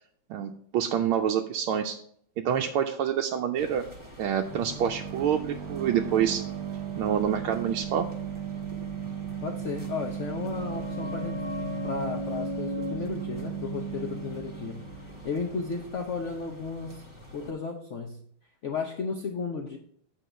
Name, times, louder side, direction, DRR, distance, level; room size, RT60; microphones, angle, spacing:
voice 1, 0.3-1.9 2.4-3.8 4.2-6.4 6.9-8.1, right 9 dB, 85° right, 3 dB, 1.5 m, -27 dB
sound 1, 3.6-17.5, equal, 15° right, 1.5 m, -48 dB
sound 2, 4.5-15.9, right 8 dB, 65° right, 0.9 m, -36 dB
voice 2, 9.4-11.4 11.8-14.8 15.2-17.0 17.3-18.2 18.6-19.8, left 4 dB, 85° left, 3 dB, 0.6 m, -34 dB
sound 3, 9.9-15.3 15.5-15.6, left 3 dB, 50° left, 0.8 m, -38 dB
8.4 x 3.7 x 6.7 m, 0.63 s
omnidirectional pair, 2.2 m